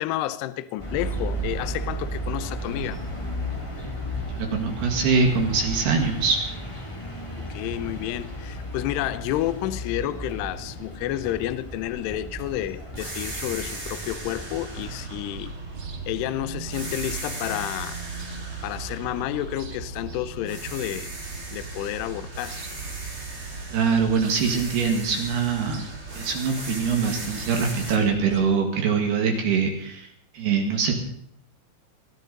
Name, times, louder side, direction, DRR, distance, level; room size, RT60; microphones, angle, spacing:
voice 1, 0.0-3.0 7.5-15.5 16.1-18.0 18.6-21.1 21.5-22.6, left 14 dB, 85° left, 2.4 m, -30 dB
sound 1, 0.8-15.0, equal, 20° left, 0.9 m, -34 dB
voice 2, 4.3-6.4 23.7-25.8 26.2-30.1 30.3-31.0, right 5 dB, 65° right, 3.4 m, -23 dB
sound 2, 12.9-16.2 16.7-20.1 20.4-27.9, right 2 dB, 20° right, 1.9 m, -39 dB
sound 3, 14.7-28.4, right 4 dB, 85° right, 1.1 m, -38 dB
22.0 x 14.0 x 4.0 m
omnidirectional pair, 5.7 m